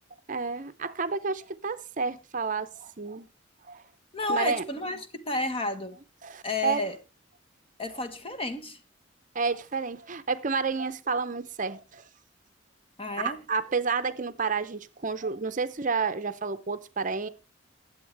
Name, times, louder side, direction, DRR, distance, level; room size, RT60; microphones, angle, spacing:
voice 1, 0.3-3.3 3.7-3.8 4.3-4.7 6.2-6.9 7.9-8.0 9.3-12.1 13.0-17.3, right 4 dB, 40° right, 0.7 m, -30 dB
voice 2, 4.1-6.0 6.4-7.0 7.8-8.8 13.0-13.4, left 2 dB, 30° left, 1.3 m, -31 dB
21.5 x 8.0 x 3.4 m
head